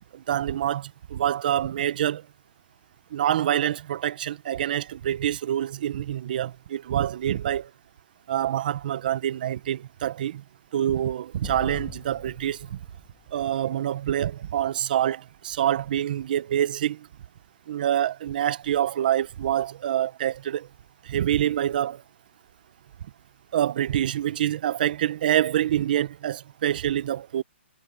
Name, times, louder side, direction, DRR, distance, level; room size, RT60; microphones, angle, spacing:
voice 1, 0.1-2.2 3.1-7.7 8.3-10.4 10.7-12.8 13.3-17.1 17.7-20.7 21.0-22.0 23.5-27.4, right 11 dB, 45° right, 1.4 m, -26 dB
Explosion, 11.4-14.7, left 21 dB, 25° left, 2.2 m, -44 dB
hypercardioid pair, 155°, 6 cm